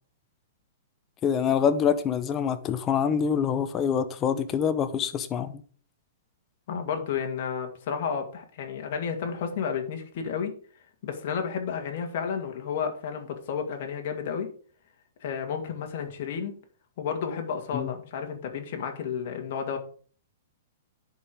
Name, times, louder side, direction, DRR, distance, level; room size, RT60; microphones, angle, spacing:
voice 1, 1.2-5.5 17.7-17.9, left 7 dB, 20° left, 0.8 m, -25 dB
voice 2, 6.7-10.5 11.0-14.5 15.2-16.5 17.0-19.8, left 7 dB, 50° left, 2.2 m, -31 dB
10.5 x 4.7 x 5.2 m
hypercardioid pair, 155°, 0 cm